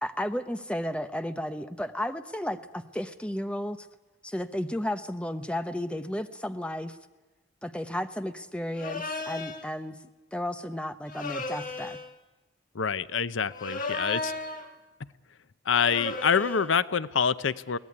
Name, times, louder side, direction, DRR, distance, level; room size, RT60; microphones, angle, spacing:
voice 1, 0.0-3.9 4.2-7.0 7.6-10.0 10.3-12.0, left 1 dB, 5° left, 9 dB, 0.9 m, -33 dB
sound 1, 8.7-9.7 11.1-12.1 13.5-14.7 15.7-16.7, left 3 dB, 45° left, 1.6 m, -35 dB
voice 2, 12.7-14.3 15.7-17.8, left 6 dB, 85° left, 16 dB, 0.7 m, -26 dB
22.5 x 17.5 x 9.6 m, 1.2 s
head